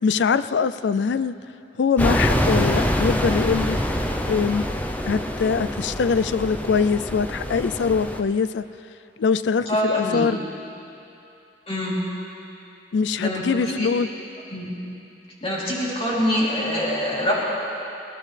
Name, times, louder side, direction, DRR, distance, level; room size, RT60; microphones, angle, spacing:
voice 1, 0.0-1.4 1.8-3.8 4.3-4.6 5.1-8.6 9.2-10.4 12.9-14.1, left 5 dB, 75° left, 14 dB, 0.4 m, -22 dB
sound 1, 2.0-8.2, equal, 10° left, 0.6 m, -25 dB
voice 2, 9.7-10.3 11.7-12.0 13.2-13.9 14.5-14.7 15.4-17.3, equal, 35° left, -6 dB, 3.2 m, -25 dB
20.5 x 17.5 x 3.3 m, 2.8 s
head